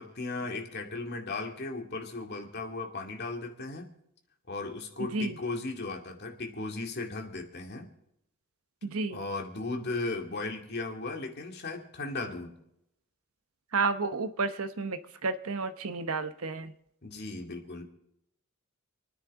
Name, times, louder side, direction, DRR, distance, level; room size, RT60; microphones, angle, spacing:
voice 1, 0.0-3.9 4.5-7.9 9.1-12.6 17.0-17.8, left 3 dB, 50° left, 2 dB, 2.3 m, -36 dB
voice 2, 5.0-5.4 8.8-9.2 13.7-16.7, right 4 dB, 85° right, 9 dB, 0.9 m, -31 dB
28.5 x 9.8 x 3.7 m, 0.80 s
head